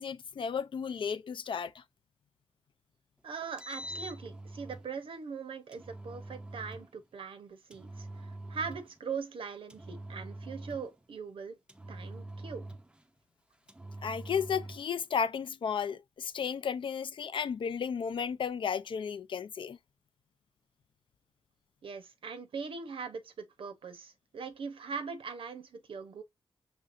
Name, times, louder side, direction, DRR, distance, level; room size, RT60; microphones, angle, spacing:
voice 1, 0.0-1.7 14.0-19.8, left 7 dB, 60° left, 0.4 m, -33 dB
voice 2, 3.2-11.6 11.9-12.7 21.8-26.2, right 5 dB, 70° right, 0.8 m, -41 dB
Engine, 3.4-4.9 5.7-6.9 7.7-9.0 9.7-11.0 11.7-13.0 13.7-14.9, right 1 dB, 10° right, 0.5 m, -44 dB
5.2 x 2.8 x 2.5 m
cardioid pair, 50°, 10 cm